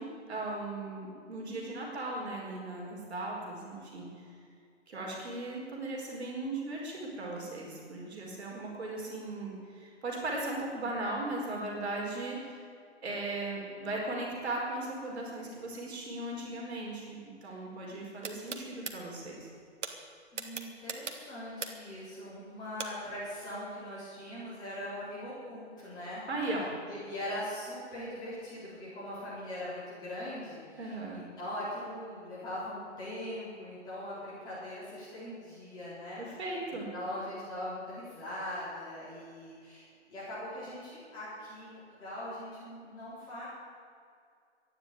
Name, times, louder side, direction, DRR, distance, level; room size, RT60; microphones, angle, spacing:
voice 1, 0.0-4.3 4.9-12.7 13.0-19.5 26.3-26.7 30.8-31.2 36.2-36.9, right 2 dB, 65° right, -2 dB, 4.6 m, -37 dB
sound 1, 18.2-18.9 19.8-19.9 20.4-21.9 22.8-22.9, right 5 dB, 85° right, 2.0 m, -38 dB
voice 2, 20.3-26.2 26.9-36.2 36.7-41.7 42.0-43.5, left 1 dB, 10° left, -11 dB, 4.2 m, -41 dB
13.0 x 10.5 x 9.1 m, 2.3 s
hypercardioid pair, 170°, 35 cm